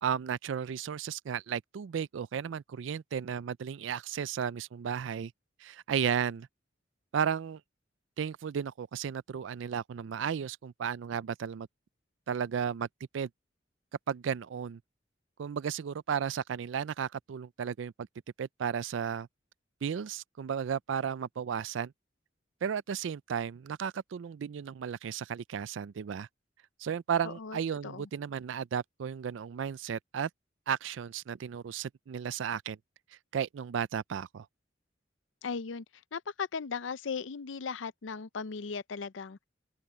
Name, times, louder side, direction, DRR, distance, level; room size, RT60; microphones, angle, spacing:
voice 1, 0.0-5.3 5.6-6.5 7.1-7.6 8.2-11.7 12.3-12.9 13.1-13.3 14.1-14.8 15.4-17.9 18.4-19.3 19.8-21.9 22.6-26.3 26.8-30.3 30.7-32.8 33.3-34.5, right 7 dB, 80° right, 0.4 m, -34 dB
voice 2, 27.2-28.1 35.4-35.8 36.1-39.4, left 5 dB, 85° left, 0.6 m, -37 dB
open air
head